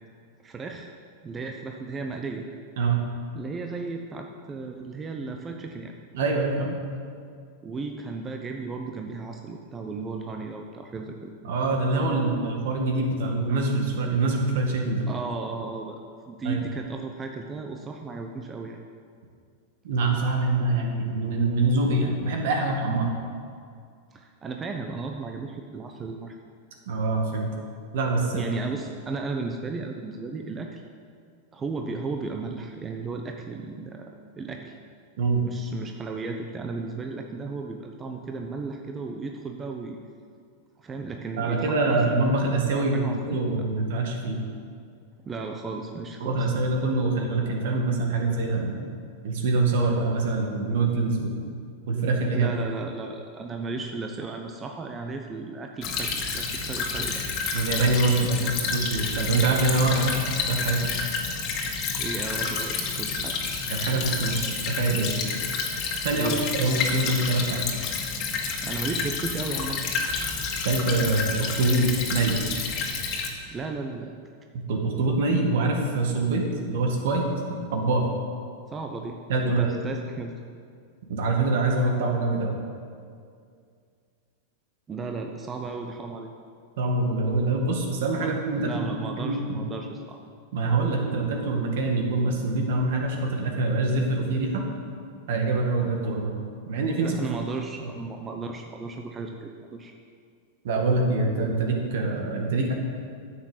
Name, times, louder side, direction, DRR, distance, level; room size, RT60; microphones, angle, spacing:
voice 1, 0.4-0.9 1.2-2.5 3.3-5.9 6.6-6.8 7.6-11.3 15.1-16.0 16.3-18.8 24.1-26.3 28.3-30.8 31.5-34.8 35.4-40.0 40.8-42.0 42.2-42.3 42.7-43.4 45.2-46.5 52.3-57.2 58.3-58.5 59.9-60.1 62.0-63.4 66.2-66.5 68.6-69.8 73.5-74.1 78.7-79.2 79.4-80.3 84.9-86.3 88.2-90.2 97.0-99.9, right 4 dB, 25° right, 3 dB, 0.9 m, -35 dB
voice 2, 6.1-6.7 11.4-15.1 16.4-16.6 19.8-23.1 26.9-27.5 27.9-28.4 35.2-35.4 41.4-44.4 46.2-48.9 49.2-51.4 51.9-52.5 57.5-60.1 60.5-60.9 63.7-65.2 66.0-67.7 70.6-72.4 74.7-77.3 77.7-78.1 79.3-79.7 81.1-82.6 86.8-88.9 89.2-89.6 90.5-94.6 95.3-96.3 96.7-97.2 100.6-102.7, right 3 dB, 65° right, 1 dB, 2.0 m, -25 dB
Stream / Trickle dribble, 55.8-73.3, left 5 dB, 45° left, 1.7 m, -29 dB
9.8 x 6.6 x 7.3 m, 2.3 s
hypercardioid pair, 100°, 0 cm